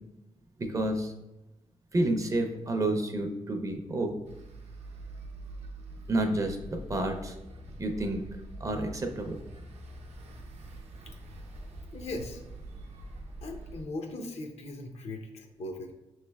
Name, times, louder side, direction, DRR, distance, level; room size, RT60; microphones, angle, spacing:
voice 1, 0.6-1.1 1.9-4.2 6.1-7.4 7.8-8.2 8.6-9.4, right 1 dB, 30° right, 5 dB, 0.4 m, -29 dB
sound 1, 4.2-13.8, right 1 dB, 75° right, 0.6 m, -44 dB
voice 2, 11.9-12.4 13.4-15.9, left 2 dB, 75° left, 4 dB, 0.5 m, -39 dB
5.6 x 3.1 x 2.2 m, 0.99 s
wide cardioid pair, 115°, 11 cm